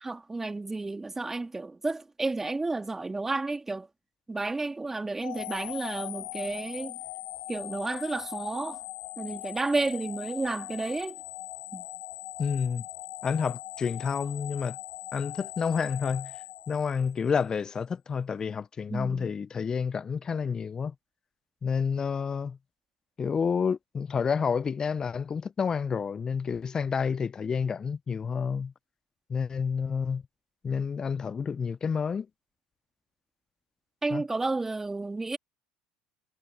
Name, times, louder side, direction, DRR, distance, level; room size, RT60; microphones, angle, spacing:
voice 1, 0.0-3.9 4.3-7.0 7.5-8.8 9.2-11.2 11.7-11.9 18.9-19.3 34.0-35.4, right 3 dB, 15° right, 2.8 m, -31 dB
sound 1, 5.2-17.4, left 20 dB, 60° left, 0.6 m, -41 dB
voice 2, 12.4-12.8 13.2-14.8 15.1-20.9 21.6-22.6 23.2-28.7 29.3-30.2 30.6-32.3 34.1-34.2, left 6 dB, 30° left, 0.9 m, -29 dB
hypercardioid pair, 70°, 2 cm